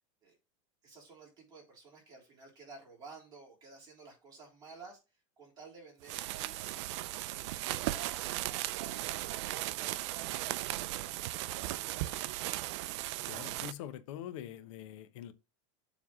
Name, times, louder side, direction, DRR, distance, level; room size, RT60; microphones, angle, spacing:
voice 1, 0.8-8.4 8.8-12.9, right 4 dB, 25° right, 3.6 m, -55 dB
sound 1, 6.0-13.7, right 15 dB, 60° right, 0.5 m, -37 dB
voice 2, 13.3-15.3, left 11 dB, 70° left, 1.0 m, -44 dB
7.4 x 3.4 x 6.1 m
supercardioid pair, 160°, 17 cm